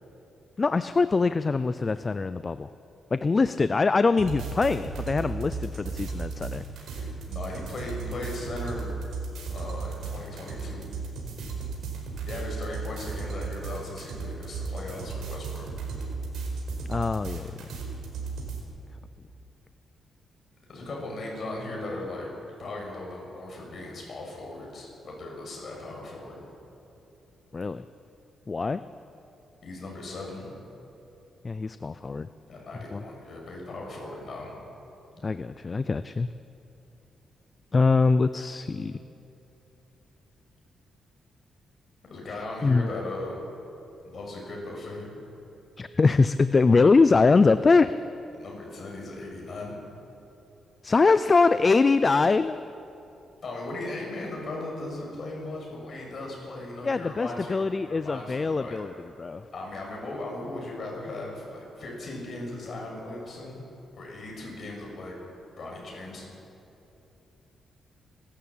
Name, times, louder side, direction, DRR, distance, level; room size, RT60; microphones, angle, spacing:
voice 1, 0.6-2.7 3.1-6.6 16.9-17.5 27.5-27.8 28.5-28.8 31.4-32.3 32.9-33.0 35.2-36.3 37.7-39.0 42.6-42.9 45.8-47.9 50.8-52.6 56.8-58.9 59.2-59.4, left 4 dB, 25° left, 13 dB, 0.4 m, -23 dB
sound 1, 4.2-18.6, right 4 dB, 85° right, 4.6 m, -35 dB
voice 2, 6.9-8.9 9.5-10.9 12.2-15.7 20.7-22.3 22.6-26.4 29.6-30.5 32.5-34.5 42.1-43.4 44.0-45.1 48.3-49.7 53.4-58.8 59.5-63.6 64.0-65.1 65.6-66.3, left 2 dB, 40° left, -2 dB, 7.0 m, -37 dB
29.5 x 13.0 x 8.6 m, 3.0 s
wide cardioid pair, 150°, 0 cm